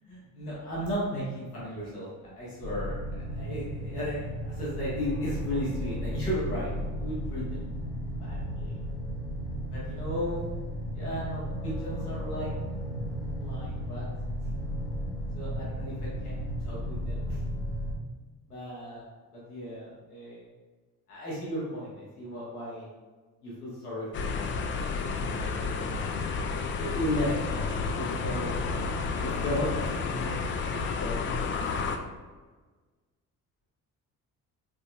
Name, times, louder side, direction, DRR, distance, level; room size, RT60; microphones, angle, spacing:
voice 1, 0.1-2.1 2.4-7.7 8.2-8.8 9.7-10.5 10.9-12.5 13.4-14.1 15.3-17.4 18.5-19.1 19.3-20.4 21.1-22.9 23.4-24.6 24.8-26.1 26.8-27.6 27.9-28.5 29.2-31.7, equal, 85° left, -7 dB, 1.3 m, -35 dB
sound 1, 2.6-18.0, equal, 55° left, 0.9 m, -34 dB
sound 2, 24.1-32.0, left 4 dB, 30° left, 0.4 m, -31 dB
5.1 x 3.8 x 2.2 m, 1.4 s
figure-of-eight pair, 45°, 45 cm